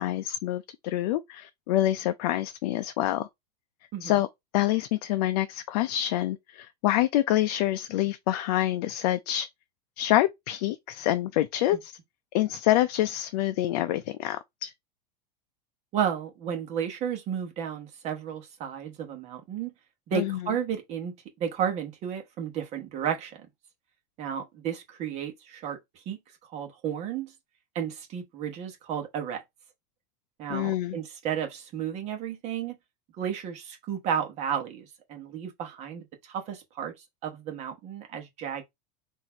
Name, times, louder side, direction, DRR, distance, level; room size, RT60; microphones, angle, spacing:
voice 1, 0.0-3.3 4.0-4.3 4.5-9.5 10.0-11.9 12.3-14.7 20.1-20.4 30.5-31.0, left 14 dB, 65° left, 0.5 m, -26 dB
voice 2, 15.9-19.7 20.1-23.4 24.2-25.8 26.1-26.2 26.5-27.3 27.7-29.4 30.4-32.7 33.2-36.9 37.2-38.6, right 8 dB, 30° right, 1.1 m, -32 dB
4.0 x 2.7 x 4.4 m
supercardioid pair, 165°, 21 cm